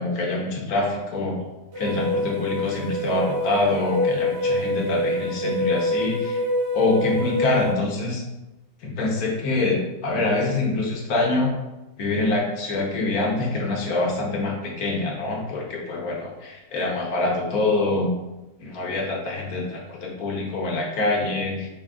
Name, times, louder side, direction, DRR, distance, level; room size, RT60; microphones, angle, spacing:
voice 1, 0.0-1.4 1.8-6.4 6.7-8.2 8.8-11.5 12.0-18.1 18.6-21.7, left 2 dB, 65° left, -2 dB, 1.3 m, -25 dB
sound 1, 1.7-7.7, left 1 dB, 60° right, 0.7 m, -26 dB
5.0 x 2.5 x 3.5 m, 1.0 s
omnidirectional pair, 1.8 m